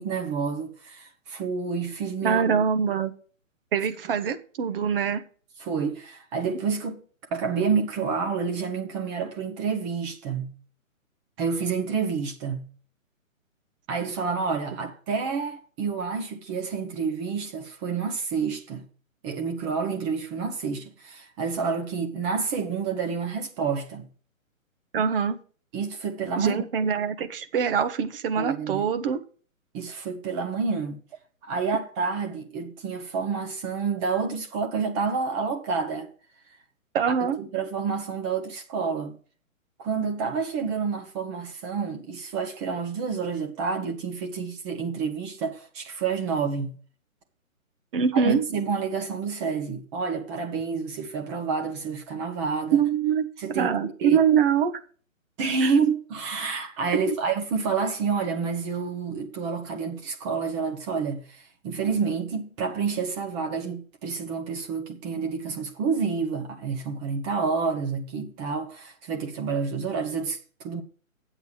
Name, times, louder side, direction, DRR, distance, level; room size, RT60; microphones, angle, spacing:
voice 1, 0.0-2.6 5.6-7.0 7.3-10.6 11.4-12.7 13.9-18.9 19.2-24.1 25.7-26.6 28.3-28.9 29.7-31.0 31.4-36.1 37.4-39.2 39.8-46.7 48.1-52.8 53.4-54.2 55.4-70.8, right 5 dB, 20° right, 1.0 m, -29 dB
voice 2, 2.2-3.1 3.7-5.2 24.9-25.4 26.4-29.2 36.9-37.4 47.9-48.4 52.7-53.3 53.5-54.7 55.6-55.7 57.1-57.2, right 7 dB, 40° right, 1.2 m, -24 dB
9.3 x 8.0 x 4.9 m
figure-of-eight pair, 135°, 41 cm